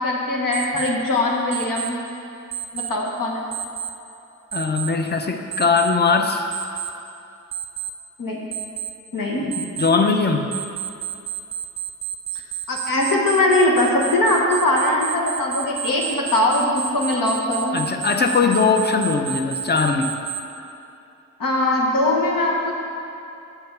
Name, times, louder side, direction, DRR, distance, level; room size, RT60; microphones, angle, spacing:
voice 1, 0.0-2.0 2.7-3.4 8.2-8.4 9.1-9.7 12.3-12.4 12.7-16.7 16.9-17.8 21.4-22.7, left 1 dB, 80° left, -2 dB, 1.3 m, -21 dB
Alarm, 0.5-0.9 1.5-1.9 2.5-2.9 3.5-3.9 4.5-4.9 5.5-5.9 6.5-6.9 7.5-7.9 8.5-8.9 9.5-9.9 10.5-20.4, right 11 dB, 15° right, 0.7 m, -30 dB
voice 2, 4.5-6.5 9.8-10.6 17.7-20.2, left 4 dB, 30° left, 4 dB, 0.7 m, -20 dB
7.7 x 4.8 x 6.6 m, 2.7 s
cardioid pair, 80°, 33 cm